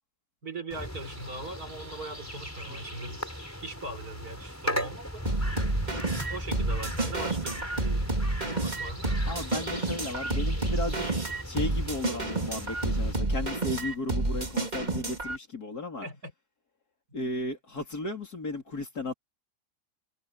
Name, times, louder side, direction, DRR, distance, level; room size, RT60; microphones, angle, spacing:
voice 1, 0.4-3.2 3.6-5.3 6.3-8.1 8.4-9.1 16.0-16.3, right 2 dB, 65° right, 4.7 m, -40 dB
sound 1, 0.7-13.1, equal, 10° left, 4.3 m, -38 dB
sound 2, 5.3-15.4, right 2 dB, 25° right, 2.8 m, -29 dB
voice 2, 9.3-16.0 17.1-19.1, left 2 dB, 65° left, 4.3 m, -35 dB
omnidirectional pair, 1.7 m